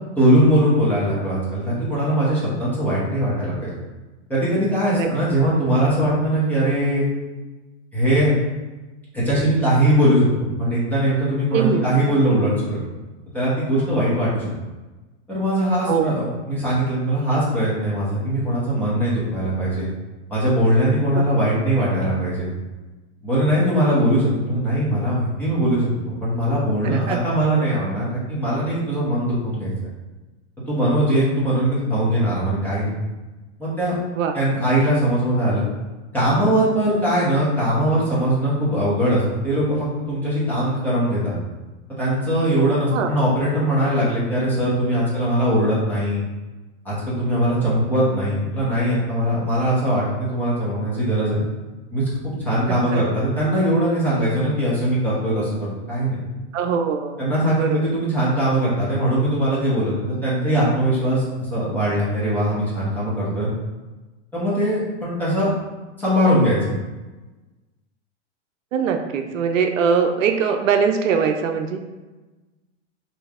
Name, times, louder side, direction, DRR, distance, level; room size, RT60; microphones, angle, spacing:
voice 1, 0.2-3.7 4.3-7.0 7.9-8.3 9.1-12.8 13.3-14.5 15.3-19.9 20.3-22.5 23.2-29.7 30.7-32.9 33.6-33.9 34.3-35.6 36.1-41.3 42.0-46.2 46.8-51.4 51.9-56.2 57.2-63.5 64.3-65.5 66.0-66.8, right 1 dB, 5° left, -9 dB, 1.0 m, -21 dB
voice 2, 11.5-11.8 15.9-16.1 21.1-21.2 26.8-27.2 34.2-34.3 42.9-43.1 52.7-53.0 56.5-57.9 68.7-71.9, right 6 dB, 85° right, 5 dB, 0.6 m, -22 dB
3.1 x 2.7 x 3.5 m, 1.2 s
hypercardioid pair, 145°, 38 cm